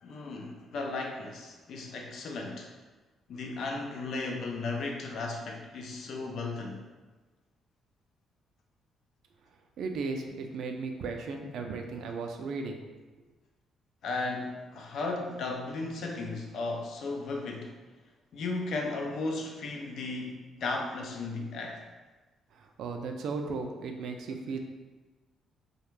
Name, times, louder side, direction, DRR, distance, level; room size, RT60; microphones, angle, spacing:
voice 1, 0.0-2.7 3.3-6.8 14.0-17.7 18.3-21.8, left 3 dB, 70° left, 1 dB, 0.4 m, -35 dB
voice 2, 9.8-12.8 22.5-24.6, right 4 dB, 75° right, 4 dB, 0.3 m, -36 dB
2.3 x 2.1 x 3.1 m, 1.2 s
cardioid pair, 90°, 0 cm